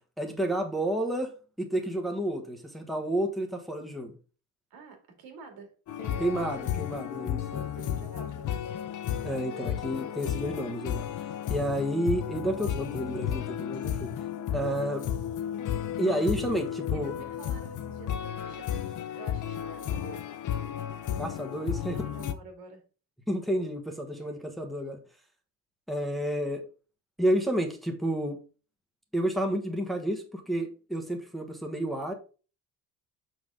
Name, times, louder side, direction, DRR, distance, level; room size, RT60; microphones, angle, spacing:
voice 1, 0.2-4.2 6.2-7.7 9.2-14.2 14.5-15.1 16.0-17.1 21.2-22.0 23.3-25.0 25.9-26.6 27.2-28.4 29.1-32.1, right 1 dB, ahead, 2 dB, 1.2 m, -30 dB
voice 2, 4.7-6.3 7.5-8.7 16.7-20.3 21.7-22.8 24.3-24.5, right 5 dB, 80° right, 3 dB, 2.6 m, -49 dB
sound 1, 5.9-22.3, left 10 dB, 55° left, 0.8 m, -33 dB
6.2 x 6.0 x 3.7 m, 0.35 s
cardioid pair, 120°, 36 cm